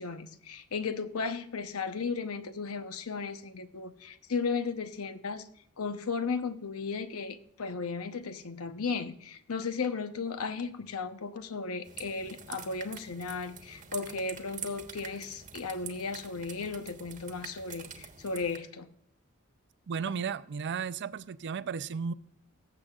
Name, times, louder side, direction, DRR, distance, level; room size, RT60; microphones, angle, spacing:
voice 1, 0.0-5.4 5.8-18.9, left 4 dB, 75° left, 10 dB, 0.8 m, -35 dB
sound 1, 11.8-18.6, right 7 dB, 35° right, 1.2 m, -46 dB
voice 2, 19.9-22.1, right 6 dB, 55° right, 15 dB, 0.4 m, -34 dB
18.5 x 7.7 x 2.4 m, 0.70 s
head